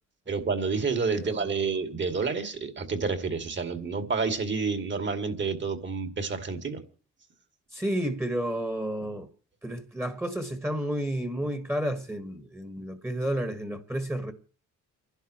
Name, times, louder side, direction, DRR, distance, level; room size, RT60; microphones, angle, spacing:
voice 1, 0.3-6.8, right 4 dB, 40° right, 2.5 m, -29 dB
voice 2, 1.1-1.5 7.7-9.3 9.6-14.3, right 1 dB, 10° right, 1.7 m, -31 dB
29.5 x 11.5 x 3.1 m
cardioid pair, 90°, 30 cm